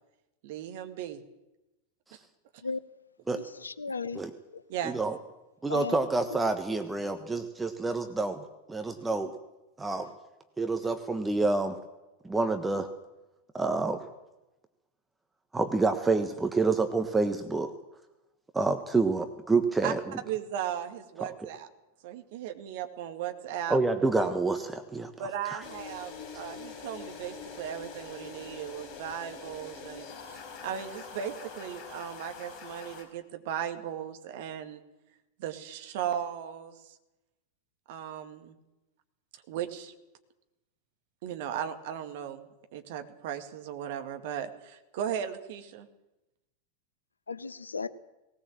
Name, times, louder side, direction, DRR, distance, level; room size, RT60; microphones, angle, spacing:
voice 1, 0.4-1.2 4.7-5.0 19.8-19.9 20.2-21.7 22.0-23.8 25.2-34.8 35.4-36.9 37.9-38.5 39.5-39.9 41.2-45.9, right 9 dB, 50° right, 2.1 m, -37 dB
voice 2, 3.3-4.2 4.5-4.6 5.7-6.0 6.3-6.4 47.3-47.9, left 4 dB, 75° left, 0.8 m, -35 dB
voice 3, 4.8-5.2 5.6-9.3 9.8-10.1 10.6-11.8 12.2-12.9 13.5-14.0 15.5-17.7 18.5-20.0 23.7-25.1 25.5-25.6, right 3 dB, 10° right, 1.3 m, -28 dB
sound 1, 25.6-33.0, left 5 dB, 35° left, 5.0 m, -44 dB
19.0 x 19.0 x 7.6 m
figure-of-eight pair, 90°, 0 cm